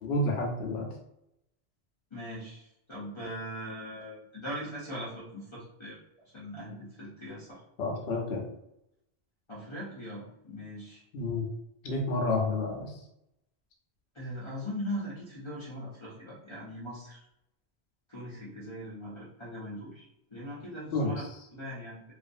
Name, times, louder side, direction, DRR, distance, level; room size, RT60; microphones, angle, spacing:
voice 1, 0.0-0.9 7.8-8.4 11.1-11.5 11.8-12.9 20.9-21.2, left 2 dB, 80° left, 0 dB, 1.0 m, -30 dB
voice 2, 2.1-6.0 6.3-7.6 9.5-11.0 14.1-17.2 18.1-22.0, equal, 30° left, -10 dB, 0.7 m, -40 dB
2.5 x 2.5 x 2.5 m, 0.81 s
omnidirectional pair, 1.1 m